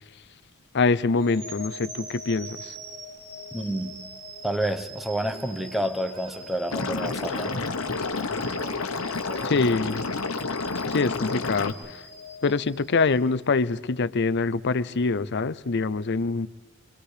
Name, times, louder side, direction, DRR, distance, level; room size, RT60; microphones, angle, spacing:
voice 1, 0.7-2.7 9.4-10.1 10.9-12.0 12.4-16.5, left 4 dB, 55° left, 16 dB, 0.6 m, -24 dB
sound 1, 1.1-13.3, equal, 55° right, 4.4 m, -43 dB
voice 2, 3.5-4.0 4.4-7.6, right 1 dB, ahead, 9 dB, 1.1 m, -29 dB
sound 2, 3.6-3.9 5.3-6.5 7.2-8.3 8.5-9.5, right 3 dB, 85° right, 3.1 m, -44 dB
Liquid, 6.7-11.7, left 3 dB, 80° left, 1.3 m, -29 dB
25.0 x 25.0 x 5.0 m, 1.1 s
head